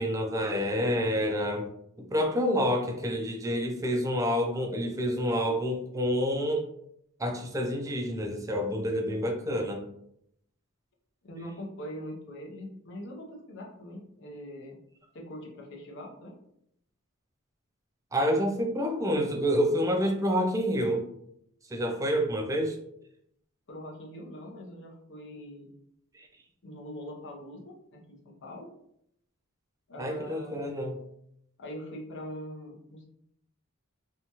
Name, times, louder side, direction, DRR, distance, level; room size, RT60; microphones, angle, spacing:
voice 1, 0.0-1.7 2.0-6.6 7.2-9.8 18.1-21.1 21.7-22.8 26.1-26.3 30.0-31.0, equal, 15° right, 3 dB, 0.4 m, -28 dB
voice 2, 11.2-14.8 15.1-16.4 23.7-25.7 26.6-28.7 29.9-30.7 31.6-33.1, equal, 60° left, 0 dB, 0.7 m, -42 dB
2.7 x 2.2 x 2.8 m, 0.73 s
head